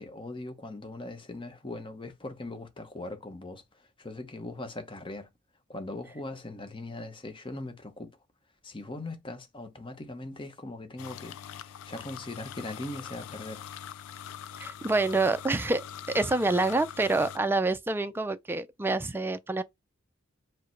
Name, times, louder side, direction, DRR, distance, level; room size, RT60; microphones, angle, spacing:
voice 1, 0.0-3.6 4.0-5.3 5.7-8.2 8.6-11.4 11.6-13.6, left 2 dB, 25° left, 0.8 m, -40 dB
sound 1, 11.0-17.4, left 9 dB, 70° left, 0.4 m, -43 dB
voice 2, 14.6-19.6, right 2 dB, 10° right, 0.4 m, -27 dB
4.8 x 2.1 x 4.4 m
head